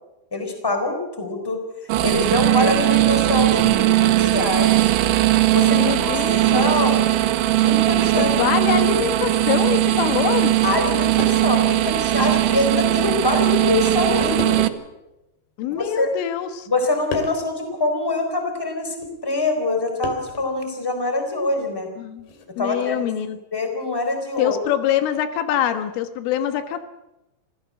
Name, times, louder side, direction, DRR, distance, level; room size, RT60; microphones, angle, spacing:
voice 1, 0.3-1.6 2.0-4.9 5.5-6.1 6.5-7.1 7.6-8.3 8.7-8.9 10.6-14.6 15.7-16.1 16.7-21.9 22.6-23.1 23.5-24.6, left 2 dB, 5° left, 5 dB, 3.4 m, -24 dB
sound 1, 1.9-14.7, right 15 dB, 80° right, 3.2 m, -19 dB
voice 2, 5.7-6.7 8.0-10.6 15.6-16.7 22.0-22.3 22.6-23.4 24.4-26.8, left 10 dB, 85° left, 9 dB, 3.9 m, -24 dB
sound 2, 9.5-9.7 10.8-10.9 11.2-11.7 12.3-12.4 13.3-13.5 14.2-14.9 15.8-16.4 17.1-17.5 19.0-19.2 20.0-20.6 22.2-22.5, left 2 dB, 60° left, 4.3 m, -33 dB
26.0 x 16.0 x 7.6 m, 0.96 s
omnidirectional pair, 5.6 m